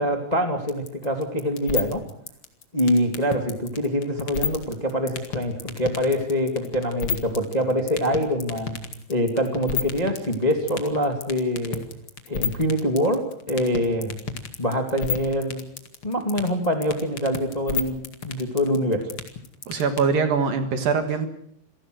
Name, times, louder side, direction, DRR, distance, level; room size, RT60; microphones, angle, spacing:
voice 1, 0.0-2.0 2.7-8.8 9.1-11.8 12.3-13.2 13.5-14.2 14.6-15.6 16.0-19.1, equal, 15° left, 5 dB, 1.4 m, -24 dB
sound 1, 0.7-20.0, left 6 dB, 40° left, 2.0 m, -29 dB
voice 2, 19.7-21.3, right 5 dB, 60° right, 8 dB, 2.9 m, -23 dB
28.0 x 18.5 x 6.4 m, 0.69 s
omnidirectional pair, 5.3 m